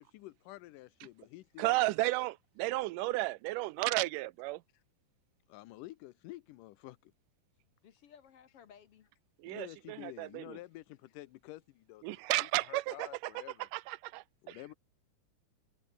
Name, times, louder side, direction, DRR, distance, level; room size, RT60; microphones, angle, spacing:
voice 1, 0.0-1.8 5.5-7.1 9.5-12.0 12.3-13.7 14.4-14.7, left 17 dB, 80° left, 2.4 m, -49 dB
voice 2, 1.6-4.6 9.4-10.6 12.0-14.6, right 19 dB, 85° right, 2.2 m, -33 dB
voice 3, 7.8-9.1, left 8 dB, 60° left, 1.7 m, -58 dB
omnidirectional pair, 3.7 m